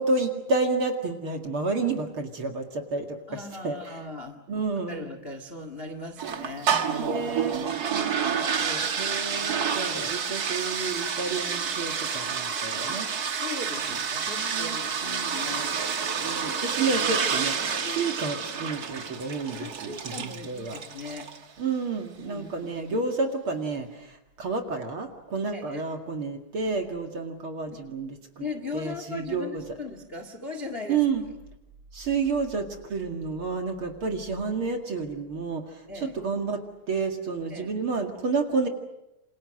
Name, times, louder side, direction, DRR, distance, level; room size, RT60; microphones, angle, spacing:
voice 1, 0.0-4.0 4.5-5.0 7.1-7.6 7.9-13.1 14.3-15.4 16.2-20.8 21.6-28.5 28.7-29.6 30.9-31.2 31.9-38.7, right 4 dB, 40° right, 4 dB, 2.6 m, -30 dB
voice 2, 3.3-4.4 4.9-7.8 9.4-9.6 13.3-15.8 16.6-17.0 17.8-18.0 19.5-21.3 22.1-23.0 25.5-25.8 27.7-27.8 28.4-31.0 35.9-36.2 37.5-37.7, left 3 dB, 25° left, 8 dB, 1.3 m, -39 dB
sound 1, 6.2-21.4, right 6 dB, 85° right, 0.8 m, -29 dB
28.0 x 27.5 x 6.5 m, 0.90 s
omnidirectional pair, 4.1 m